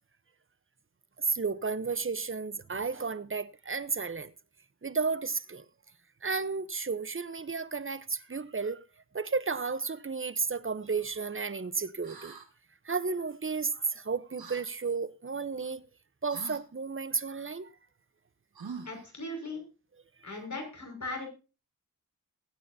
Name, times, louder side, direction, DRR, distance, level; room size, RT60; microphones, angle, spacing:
voice 1, 1.2-4.3 4.8-5.6 6.2-8.8 9.1-12.3 12.8-15.8 16.2-17.7, right 4 dB, 35° right, 0.9 m, -33 dB
sound 1, 12.0-12.5 14.4-14.6 16.3-16.6 18.5-19.1, right 5 dB, 80° right, 2.2 m, -43 dB
voice 2, 18.9-19.6 20.2-21.3, left 2 dB, 50° left, 5.8 m, -38 dB
21.5 x 9.3 x 2.8 m
cardioid pair, 55°, 36 cm